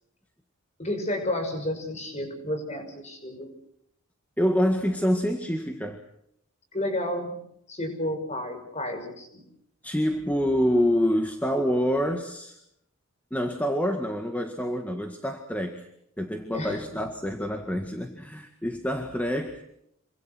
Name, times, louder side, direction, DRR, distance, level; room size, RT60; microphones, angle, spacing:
voice 1, 0.8-3.5 6.7-7.4 7.7-9.4 16.5-17.0, left 1 dB, 30° left, 6 dB, 6.1 m, -31 dB
voice 2, 4.4-6.0 9.8-12.6 13.3-15.9 16.2-19.6, equal, 5° left, 4 dB, 1.9 m, -26 dB
27.0 x 25.0 x 6.2 m, 0.76 s
head